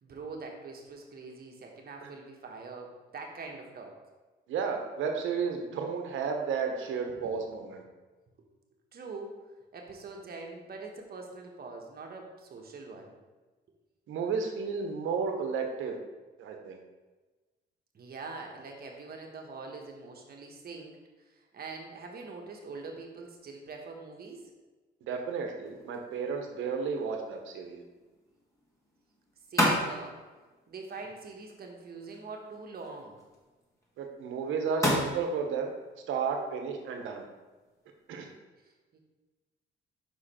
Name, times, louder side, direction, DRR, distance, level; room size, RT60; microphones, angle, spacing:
voice 1, 0.0-3.9 7.1-7.3 8.9-9.5 9.7-13.2 17.9-24.5 29.5-30.2 30.7-33.2 38.9-39.0, right 3 dB, 50° right, 1 dB, 1.3 m, -44 dB
voice 2, 4.5-7.8 14.1-16.0 16.4-16.8 25.1-27.8 34.0-35.7 36.1-37.3 38.1-38.3, right 5 dB, 80° right, 3 dB, 1.0 m, -32 dB
sound 1, 25.6-38.4, equal, 15° left, 1.9 m, -37 dB
5.6 x 5.0 x 4.3 m, 1.2 s
cardioid pair, 90°, 20 cm